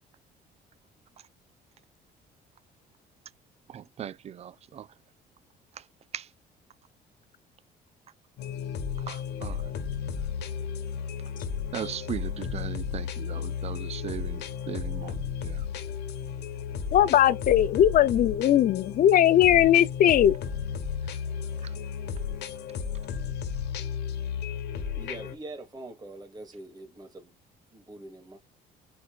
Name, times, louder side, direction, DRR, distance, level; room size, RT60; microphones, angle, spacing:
voice 1, 3.7-4.9 6.1-6.2 9.1-9.6 11.7-15.6, right 9 dB, 40° right, 0.4 m, -38 dB
sound 1, 8.4-25.4, left 7 dB, 75° left, 1.2 m, -34 dB
voice 2, 16.9-20.4, left 11 dB, 55° left, 0.7 m, -19 dB
voice 3, 25.0-27.1 27.7-28.4, right 2 dB, 25° right, 2.5 m, -43 dB
4.6 x 4.1 x 2.5 m
cardioid pair, 110°, 17 cm